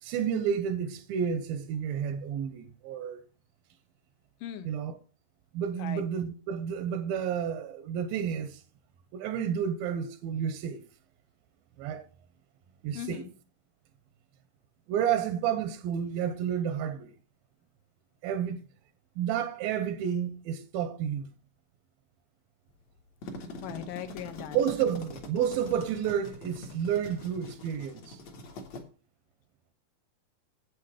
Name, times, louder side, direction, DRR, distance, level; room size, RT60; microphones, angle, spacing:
voice 1, 0.0-3.2 4.6-5.0 5.5-8.6 9.1-10.8 11.8-12.1 12.8-13.2 14.9-17.1 18.2-18.6 19.2-21.3 24.5-28.2, right 8 dB, 90° right, 2.6 m, -30 dB
voice 2, 4.4-4.7 5.8-6.0 12.9-13.3 23.6-24.6, left 11 dB, 75° left, 2.5 m, -39 dB
sound 1, 23.0-28.8, left 2 dB, 55° left, 2.7 m, -44 dB
8.4 x 8.3 x 4.9 m
omnidirectional pair, 4.1 m